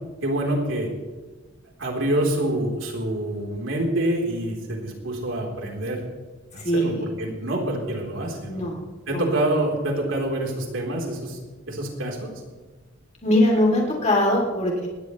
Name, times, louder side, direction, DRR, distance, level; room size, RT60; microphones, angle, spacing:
voice 1, 0.2-0.9 1.8-6.0 6.5-8.7 9.1-11.4 11.7-12.3, right 1 dB, 75° right, 0 dB, 4.1 m, -26 dB
voice 2, 6.6-7.1 8.5-8.8 9.1-9.2 13.2-14.9, left 1 dB, 35° left, -1 dB, 3.3 m, -21 dB
20.0 x 18.0 x 3.3 m, 1.3 s
head